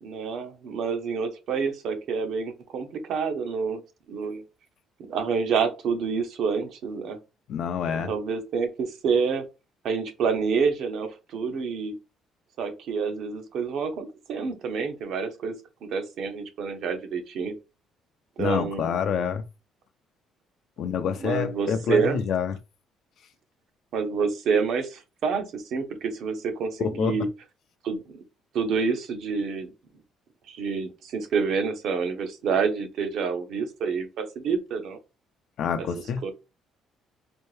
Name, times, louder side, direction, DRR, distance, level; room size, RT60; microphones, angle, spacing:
voice 1, 0.0-3.8 4.1-4.4 5.1-7.2 8.1-9.4 9.8-11.9 12.6-15.5 15.8-17.5 18.4-19.0 21.2-22.2 23.9-27.3 27.8-28.2 28.5-29.7 30.5-35.0 36.2-36.3, right 5 dB, 60° right, 0.9 m, -28 dB
voice 2, 7.5-8.1 18.4-19.4 20.8-22.5 26.8-27.2 35.6-36.3, left 7 dB, 55° left, 0.5 m, -27 dB
4.4 x 2.6 x 3.2 m
cardioid pair, 150°, 0 cm